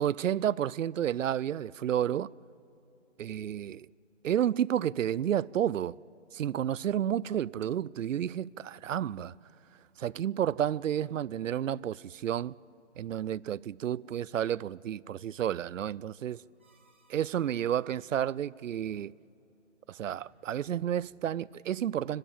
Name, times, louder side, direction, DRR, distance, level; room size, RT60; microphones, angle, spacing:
voice 1, 0.0-2.3 3.2-3.9 4.2-6.0 6.3-9.3 10.0-12.5 13.0-16.4 17.1-19.1 19.9-22.2, right 10 dB, 90° right, 0.5 m, -31 dB
sound 1, 16.6-18.3 20.1-21.6, right 3 dB, 10° right, 0.6 m, -68 dB
27.0 x 12.5 x 8.7 m
hypercardioid pair, 165°, 37 cm